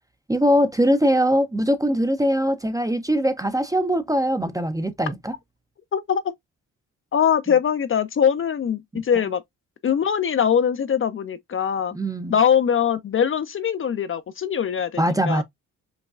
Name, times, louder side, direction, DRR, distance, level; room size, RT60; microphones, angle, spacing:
voice 1, 0.3-5.3 11.9-12.4 15.0-15.4, equal, 10° right, 0.5 m, -21 dB
voice 2, 5.9-6.2 7.1-9.4 9.8-11.9 12.3-15.4, left 8 dB, 40° left, 0.5 m, -22 dB
5.3 x 2.2 x 2.3 m
supercardioid pair, 65°, 34 cm